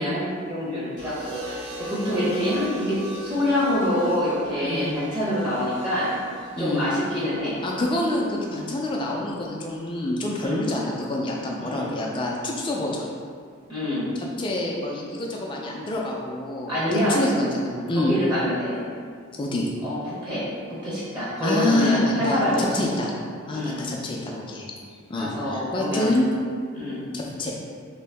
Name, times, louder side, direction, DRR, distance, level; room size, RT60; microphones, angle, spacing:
voice 1, 0.0-6.1 6.6-7.6 10.4-10.6 11.6-11.9 13.7-14.1 16.7-17.3 17.9-18.8 19.8-22.8 23.5-23.9 25.1-26.2 26.7-27.1, left 1 dB, 20° right, -9 dB, 0.8 m, -26 dB
sound 1, 1.0-9.1 10.3-10.7, right 1 dB, 50° right, 1.3 m, -41 dB
voice 2, 4.6-4.9 6.6-6.8 7.6-13.1 14.4-18.1 19.3-19.7 21.4-23.1 23.5-24.7 25.1-26.3 27.1-27.5, left 1 dB, 25° left, -2 dB, 0.4 m, -27 dB
2.9 x 2.7 x 3.3 m, 2.1 s
head